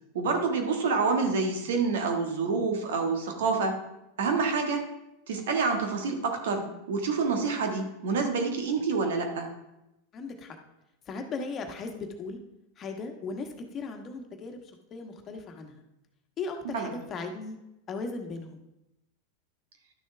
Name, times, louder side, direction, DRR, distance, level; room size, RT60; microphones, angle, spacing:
voice 1, 0.1-3.8 4.2-4.9 5.3-9.5 16.6-16.9, right 4 dB, 80° right, 4 dB, 1.6 m, -27 dB
voice 2, 10.1-10.6 11.1-12.4 12.8-14.6 14.9-15.8 16.4-17.6 17.9-18.6, left 4 dB, 35° left, 4 dB, 1.3 m, -37 dB
11.5 x 6.4 x 3.4 m, 0.90 s
hypercardioid pair, 110°, 0 cm